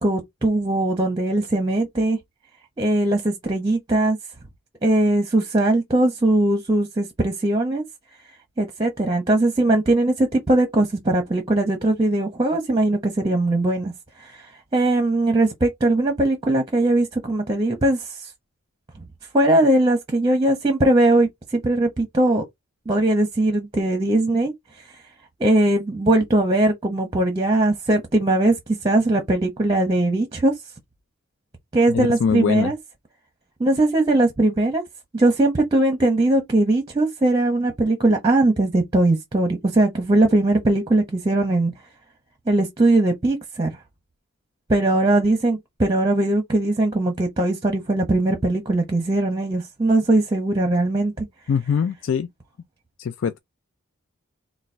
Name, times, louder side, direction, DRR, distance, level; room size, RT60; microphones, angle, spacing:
voice 1, 0.0-2.2 2.8-4.2 4.8-7.8 8.6-13.9 14.2-18.3 19.0-19.1 19.3-22.4 22.9-24.5 25.4-30.5 31.7-32.8 33.6-34.8 35.1-41.7 42.5-43.7 44.7-51.3, right 2 dB, 20° right, 0.9 m, -20 dB
voice 2, 31.9-32.7 51.5-52.3 53.0-53.4, left 6 dB, 60° left, 0.3 m, -23 dB
4.0 x 2.3 x 4.4 m
head